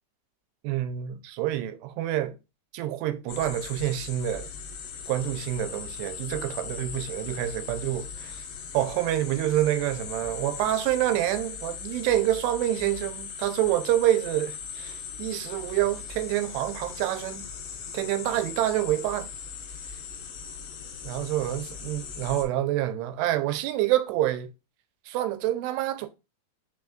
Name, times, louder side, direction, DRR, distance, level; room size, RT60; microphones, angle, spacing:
voice 1, 0.6-2.3 2.7-4.5 5.1-8.4 8.7-17.5 17.9-19.3 21.0-24.5 25.1-26.1, right 13 dB, 85° right, 2.5 m, -27 dB
sound 1, 3.3-22.5, left 6 dB, 75° left, 2.9 m, -39 dB
6.0 x 3.3 x 2.4 m
omnidirectional pair, 4.8 m